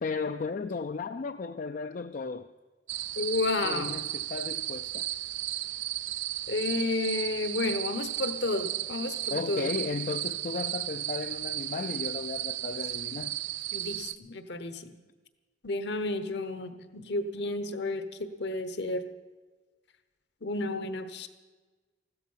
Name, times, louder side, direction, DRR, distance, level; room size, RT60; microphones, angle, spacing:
voice 1, 0.0-2.5 3.6-5.1 9.3-13.4, left 4 dB, 45° left, 9 dB, 0.4 m, -35 dB
sound 1, 2.9-14.2, right 14 dB, 85° right, 0.5 m, -34 dB
voice 2, 3.2-4.0 6.5-9.7 13.7-14.9 15.6-19.0 20.4-21.3, left 2 dB, 65° left, 10 dB, 1.1 m, -31 dB
15.5 x 13.0 x 5.6 m, 1.3 s
head